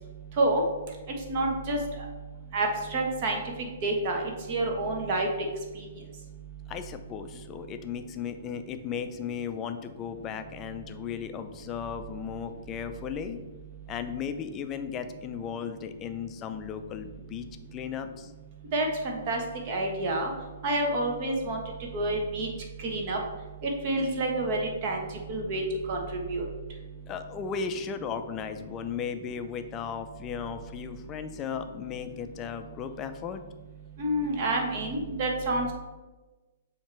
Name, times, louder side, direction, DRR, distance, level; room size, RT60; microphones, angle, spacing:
voice 1, 1.3-2.1 2.5-3.4 3.8-5.3 5.8-5.9 18.7-19.4 19.7-20.3 20.6-21.6 21.9-22.5 22.8-23.2 23.6-25.6 25.9-26.4 34.0-35.7, right 2 dB, 40° right, 1 dB, 1.3 m, -28 dB
voice 2, 6.7-13.4 13.9-18.3 27.1-33.4, left 7 dB, 25° left, 8 dB, 0.5 m, -36 dB
7.1 x 2.9 x 4.6 m, 1.2 s
figure-of-eight pair, 120°, 0 cm